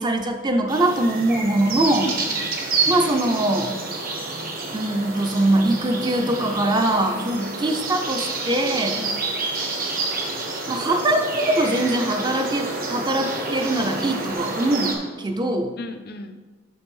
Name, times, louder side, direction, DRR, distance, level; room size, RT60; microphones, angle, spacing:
voice 1, 0.0-2.1 2.9-3.7 4.7-9.0 10.7-11.3 11.5-15.7, right 1 dB, 25° right, 5 dB, 0.6 m, -22 dB
sound 1, 0.7-14.9, right 3 dB, 50° right, 1.2 m, -28 dB
voice 2, 2.0-2.5 7.1-7.6 8.9-9.3 15.8-16.4, left 2 dB, 55° left, 8 dB, 0.6 m, -38 dB
6.1 x 5.5 x 5.5 m, 1.3 s
head